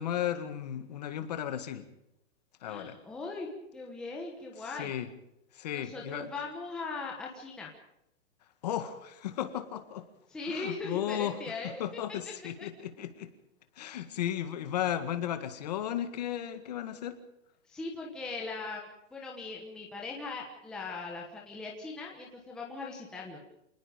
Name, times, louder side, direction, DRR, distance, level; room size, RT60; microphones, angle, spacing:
voice 1, 0.0-1.8 2.6-3.0 4.8-5.1 5.6-6.3 8.6-10.1 10.5-11.4 11.6-13.3 13.8-17.2, left 11 dB, 30° left, 9 dB, 1.9 m, -35 dB
voice 2, 2.7-3.5 3.7-4.9 5.7-7.7 10.3-11.8 12.6-12.7 17.7-23.4, left 3 dB, ahead, -2 dB, 1.2 m, -39 dB
27.5 x 20.0 x 5.2 m, 0.83 s
hypercardioid pair, 180°, 39 cm